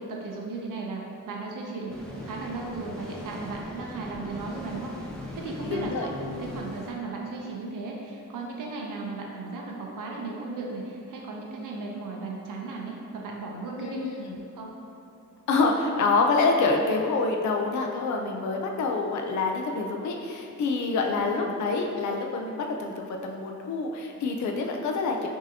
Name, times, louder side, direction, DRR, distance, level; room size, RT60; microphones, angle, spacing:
voice 1, 0.0-4.9 5.3-14.0 14.5-14.7 21.1-21.6, right 3 dB, 75° right, -1 dB, 0.6 m, -36 dB
sound 1, 1.9-6.9, left 1 dB, ahead, 0.5 m, -39 dB
voice 2, 5.6-6.1 13.8-14.4 15.5-25.3, left 3 dB, 65° left, 2 dB, 0.4 m, -27 dB
6.1 x 2.7 x 2.7 m, 2.7 s
wide cardioid pair, 130°, 32 cm